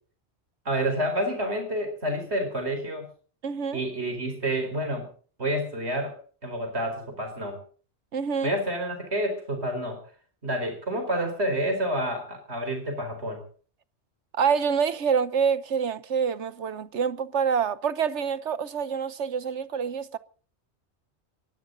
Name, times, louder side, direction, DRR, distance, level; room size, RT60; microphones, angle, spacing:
voice 1, 0.6-3.1 3.7-5.1 5.4-6.1 6.4-7.6 8.4-10.0 10.4-13.4, right 1 dB, 70° right, 4.8 m, -29 dB
voice 2, 3.4-3.8 8.1-8.6 14.3-20.2, right 6 dB, 85° right, 1.3 m, -26 dB
21.5 x 16.5 x 3.9 m
omnidirectional pair, 1.2 m